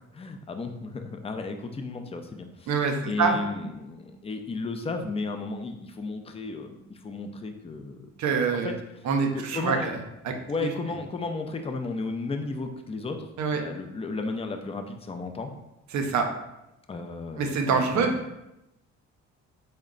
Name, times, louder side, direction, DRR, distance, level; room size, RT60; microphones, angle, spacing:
voice 1, 0.1-2.7 3.0-8.7 9.3-9.9 10.5-15.5 16.9-18.1, left 3 dB, 20° left, 6 dB, 0.4 m, -34 dB
voice 2, 2.7-3.4 8.2-8.7 9.0-10.0 10.2-10.3 10.6-10.7 13.4-13.6 15.9-16.3 17.4-18.1, right 5 dB, 70° right, 4 dB, 0.6 m, -25 dB
3.7 x 2.2 x 3.7 m, 0.90 s
cardioid pair, 90°, 30 cm